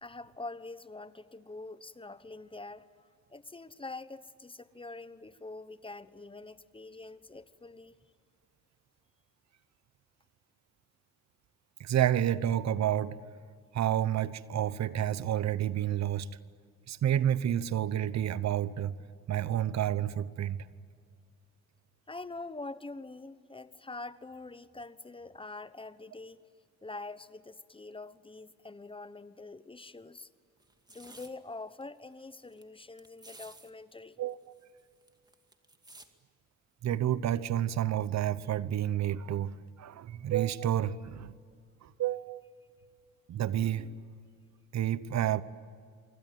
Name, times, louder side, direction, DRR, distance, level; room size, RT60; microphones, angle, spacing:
voice 1, 0.0-2.9 3.3-8.0 22.1-26.4 26.8-30.3 30.9-34.2, left 3 dB, 20° left, 1.0 m, -45 dB
voice 2, 11.8-13.1 13.7-16.3 16.9-18.9 19.3-20.6 34.2-34.4 36.8-41.3 42.0-42.4 43.3-43.9 44.7-45.4, right 11 dB, 65° right, 1.0 m, -29 dB
sound 1, 30.6-31.3 31.8-31.9 32.1-32.6 33.0-33.7 34.0-34.1 34.3-36.1 36.9-37.1, right 2 dB, 15° right, 2.2 m, -54 dB
25.5 x 23.5 x 9.4 m
cardioid pair, 90°, 30 cm